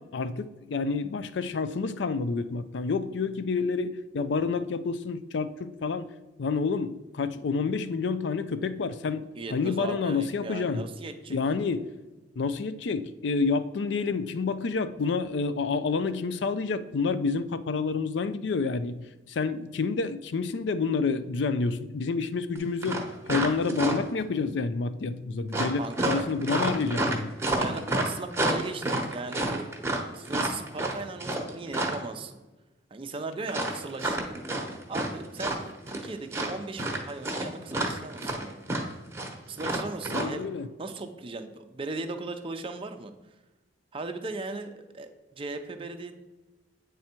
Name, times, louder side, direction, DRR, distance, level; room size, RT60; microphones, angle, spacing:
voice 1, 0.0-6.1 6.4-10.9 11.3-11.9 12.4-27.3 40.1-40.7, left 4 dB, 65° left, 13 dB, 0.4 m, -29 dB
voice 2, 9.3-11.4 25.8-26.2 27.6-29.7 30.1-32.4 32.9-34.4 34.9-38.6 39.5-40.5 40.8-43.1 43.9-45.1 45.4-46.1, right 3 dB, 30° right, 6 dB, 0.5 m, -37 dB
sound 1, 22.6-22.7 22.8-24.2 25.5-32.1 33.5-35.1 35.4-36.1 36.3-40.2, right 2 dB, 15° right, 1.0 m, -29 dB
8.7 x 3.5 x 4.4 m, 1.1 s
head